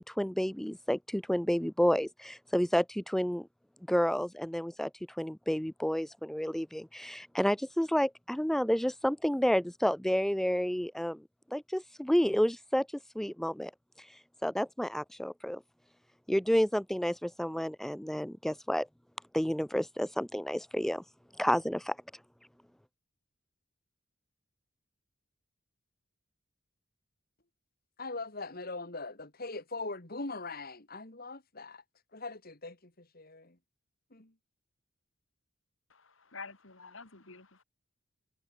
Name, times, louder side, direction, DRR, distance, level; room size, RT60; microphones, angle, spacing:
voice 1, 0.0-3.5 3.9-4.9 5.2-11.2 11.5-12.9 13.2-13.7 14.4-15.6 16.3-18.9 19.3-21.0 21.4-22.0, equal, ahead, 0.3 m, -30 dB
voice 2, 28.0-31.8 32.1-33.6 34.1-34.3, left 3 dB, 45° left, 2.8 m, -41 dB
voice 3, 35.9-37.6, left 4 dB, 70° left, 3.2 m, -48 dB
head